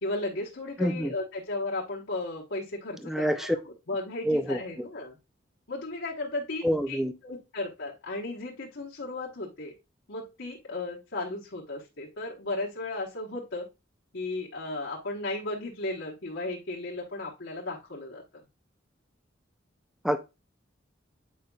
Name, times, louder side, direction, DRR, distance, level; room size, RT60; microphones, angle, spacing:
voice 1, 0.0-3.5 3.9-5.2 5.7-7.0 7.2-9.7 10.1-13.6 14.1-18.2, left 2 dB, 70° left, 1.1 m, -35 dB
voice 2, 0.8-1.1 3.0-3.6 4.3-4.9 6.6-7.1 20.0-20.2, equal, ahead, 0.4 m, -27 dB
8.4 x 5.0 x 2.3 m
head